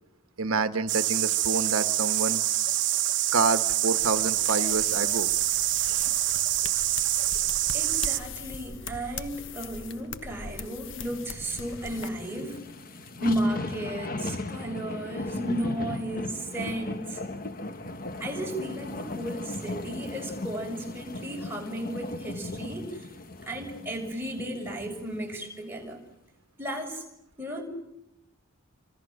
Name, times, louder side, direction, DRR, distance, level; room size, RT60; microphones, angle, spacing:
voice 1, 0.4-2.4 3.3-5.3, right 4 dB, 85° right, 9 dB, 1.2 m, -28 dB
sound 1, 0.9-8.2, right 14 dB, 60° right, 1.2 m, -26 dB
sound 2, 4.0-12.1, left 5 dB, 60° left, 1.2 m, -41 dB
voice 2, 7.7-12.6 12.9-17.3 18.2-23.1 23.4-26.0 26.6-27.1 27.4-27.7, right 1 dB, 10° right, 0 dB, 6.4 m, -34 dB
Loud Thunderclap, 10.9-25.4 25.8-25.9, left 2 dB, 40° left, 1.4 m, -37 dB
29.5 x 25.5 x 6.5 m, 0.86 s
head